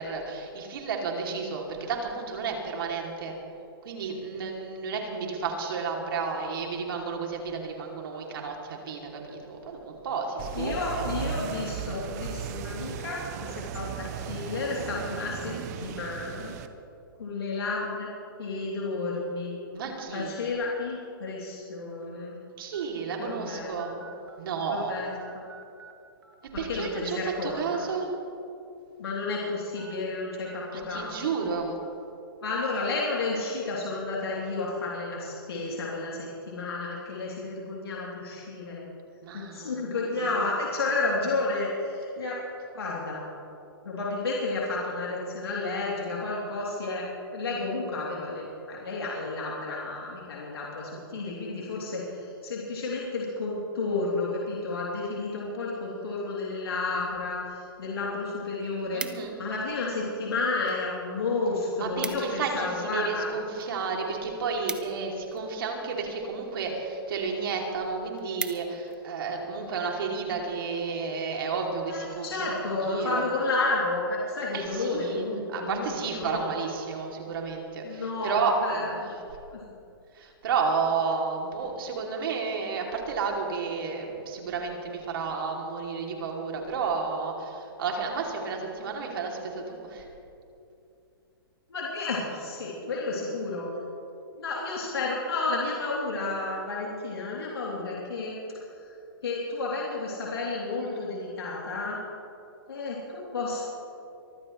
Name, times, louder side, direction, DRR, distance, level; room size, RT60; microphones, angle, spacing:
voice 1, 0.0-3.4 3.8-11.3 19.7-20.4 22.6-23.9 24.4-25.0 26.6-28.1 30.7-31.8 39.2-40.5 58.9-59.3 61.8-72.6 72.9-73.3 74.5-79.0 80.1-90.0, right 5 dB, 65° right, 0 dB, 2.9 m, -32 dB
sound 1, 10.4-16.7, right 8 dB, 45° right, 0.9 m, -36 dB
voice 2, 10.5-16.5 17.2-18.1 18.4-19.6 20.1-22.4 23.2-23.7 24.0-24.1 24.7-25.5 26.5-27.8 29.0-31.4 32.4-38.9 39.3-42.4 42.7-43.2 43.8-47.0 47.3-59.0 59.4-63.3 71.9-76.6 77.8-79.1 91.7-93.7 94.3-98.4 98.8-98.9 99.2-102.0 102.7-103.6, left 3 dB, 90° left, -5 dB, 3.2 m, -31 dB
sound 2, 19.8-20.0 20.7-20.8 21.9-22.0 22.7-22.8 23.3-23.4 23.8-24.9 25.2-25.9 26.2-26.3 27.6-27.9 28.3-28.4 29.8-30.0 30.4-30.6 31.0-31.2 31.8-31.9, right 7 dB, 80° right, 2.1 m, -50 dB
sound 3, 57.8-57.9 58.2-59.6 60.3-60.8 61.1-61.2 61.5-61.6 61.8-62.4 62.8-65.6 66.4-66.7 67.2-67.3 67.6-67.7 68.0-69.0 69.5-69.7, right 4 dB, 10° right, 0.5 m, -39 dB
23.5 x 14.5 x 3.3 m, 2.7 s
hypercardioid pair, 140°, 13 cm